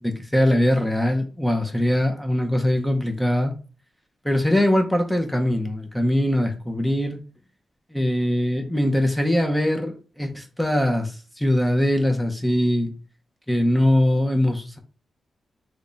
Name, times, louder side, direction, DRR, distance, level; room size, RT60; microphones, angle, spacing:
voice 1, 0.0-3.5 4.2-7.2 7.9-12.9 13.5-14.8, left 1 dB, 5° left, 0.5 m, -22 dB
3.4 x 2.1 x 3.8 m
wide cardioid pair, 140°, 0 cm